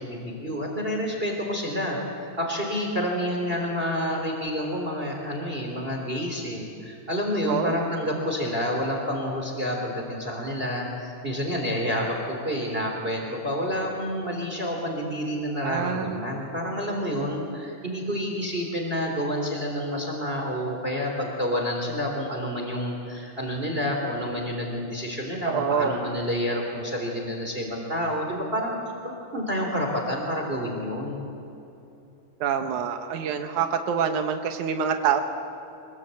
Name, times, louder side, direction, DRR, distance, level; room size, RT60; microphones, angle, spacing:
voice 1, 0.0-28.8 29.0-31.2, equal, 20° right, 1 dB, 3.5 m, -29 dB
voice 2, 15.6-16.2 25.5-25.9 32.4-35.2, right 7 dB, 85° right, 6 dB, 2.6 m, -26 dB
25.0 x 22.5 x 8.4 m, 2.8 s
omnidirectional pair, 3.3 m